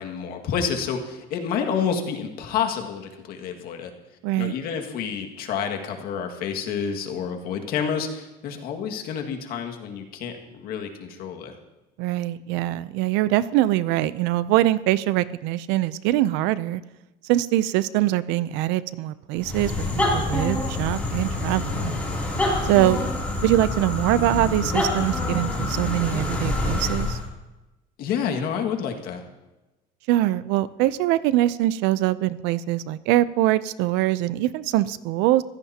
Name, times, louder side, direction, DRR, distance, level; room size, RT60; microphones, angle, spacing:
voice 1, 0.0-3.9 4.4-11.6 22.7-23.2 28.0-29.2, left 7 dB, 60° left, 3 dB, 2.0 m, -29 dB
voice 2, 4.2-4.5 12.0-16.8 17.2-21.9 22.6-23.0 23.4-27.2 30.1-35.4, right 15 dB, 90° right, 16 dB, 0.6 m, -23 dB
sound 1, 19.4-27.3, left 2 dB, 10° left, 3.1 m, -26 dB
24.0 x 16.0 x 2.9 m, 1.0 s
cardioid pair, 170°, 18 cm